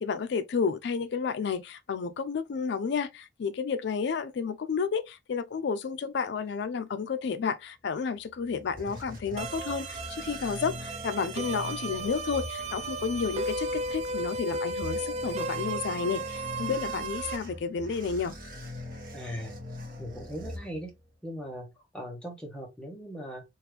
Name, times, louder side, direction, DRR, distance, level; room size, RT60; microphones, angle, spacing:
voice 1, 0.0-18.4, left 5 dB, 70° left, 0.4 m, -31 dB
sound 1, 8.2-21.2, left 1 dB, 55° right, 1.0 m, -43 dB
sound 2, 9.4-17.4, right 2 dB, 35° right, 0.4 m, -35 dB
voice 2, 19.1-19.5 20.0-20.9 21.2-21.7 21.9-23.4, equal, 5° left, 0.9 m, -39 dB
3.0 x 2.4 x 3.3 m
head